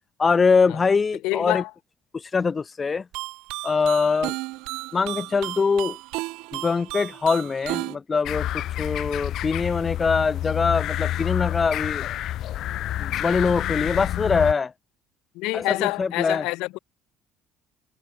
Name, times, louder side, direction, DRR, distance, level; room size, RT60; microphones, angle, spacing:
voice 1, 0.2-1.6 2.1-3.0 3.6-4.3 4.9-6.0 6.5-12.1 13.0-14.7 15.5-16.4, left 5 dB, 25° left, 1.5 m, -23 dB
voice 2, 1.2-1.7 15.3-16.8, left 22 dB, 85° left, 4.2 m, -27 dB
sound 1, 3.1-8.0, right 23 dB, 85° right, 1.7 m, -33 dB
sound 2, 8.2-14.5, left 13 dB, 60° left, 2.6 m, -28 dB
cardioid pair, 120°, 0 cm